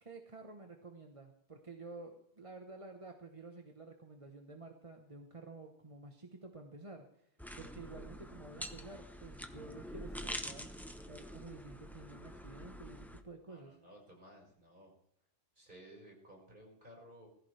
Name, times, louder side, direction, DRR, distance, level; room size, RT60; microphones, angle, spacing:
voice 1, 0.0-7.3 7.6-10.7 11.1-13.7, right 3 dB, 30° right, 3 dB, 1.2 m, -51 dB
sound 1, 7.4-13.2, equal, ahead, 0.9 m, -46 dB
voice 2, 13.5-14.9 15.6-17.3, right 1 dB, 45° right, -2 dB, 5.7 m, -56 dB
20.5 x 15.0 x 3.4 m, 0.71 s
omnidirectional pair, 1.2 m